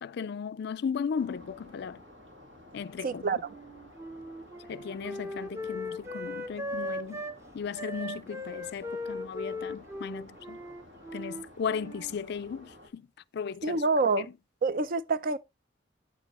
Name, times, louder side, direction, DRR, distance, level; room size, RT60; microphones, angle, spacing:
voice 1, 0.0-2.0 2.7-3.4 4.7-7.2 7.5-10.6 11.1-13.1 13.3-13.8 14.2-14.4, left 6 dB, 60° left, 0.4 m, -36 dB
sound 1, 1.2-12.9, left 1 dB, 80° right, 2.2 m, -53 dB
voice 2, 3.0-3.4 13.6-14.3 14.6-15.4, right 3 dB, 50° right, 0.5 m, -26 dB
Wind instrument woodwind instrument, 3.4-7.4 7.7-12.2, left 1 dB, 15° right, 0.8 m, -38 dB
8.8 x 7.3 x 3.0 m
head